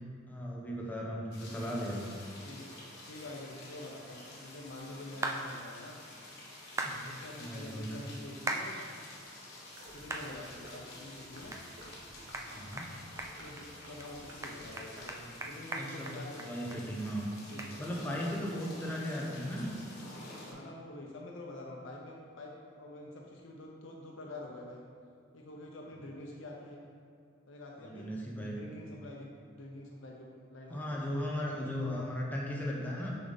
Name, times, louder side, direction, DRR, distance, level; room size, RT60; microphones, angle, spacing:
voice 1, 0.3-2.2 6.8-7.1 7.4-8.0 12.5-12.9 15.7-16.1 16.4-17.3 17.8-19.8 27.8-28.6 30.7-33.2, equal, 10° left, -3 dB, 0.9 m, -37 dB
sound 1, 1.3-20.5, left 2 dB, 55° left, 1.5 m, -50 dB
voice 2, 3.1-6.0 7.0-8.9 9.9-11.5 13.2-15.0 15.3-16.8 17.5-17.6 18.2-18.5 18.8-18.9 20.4-24.9 25.3-26.9 27.5-28.1 28.5-31.0 31.5-32.1, left 1 dB, 90° left, -1 dB, 0.8 m, -47 dB
sound 2, 5.2-5.4 6.8-7.0 8.5-8.7 9.2-9.3 10.1-10.3 10.7-10.8 11.5-11.6 11.9-12.0 12.3-12.5 12.8-12.9 13.2-13.6 14.0-14.1 14.4-16.8 17.1-17.2 17.6-17.7, right 2 dB, 15° right, 0.4 m, -37 dB
sound 3, 9.7-15.5, right 1 dB, 75° right, 1.3 m, -52 dB
6.8 x 5.2 x 4.1 m, 2.4 s
head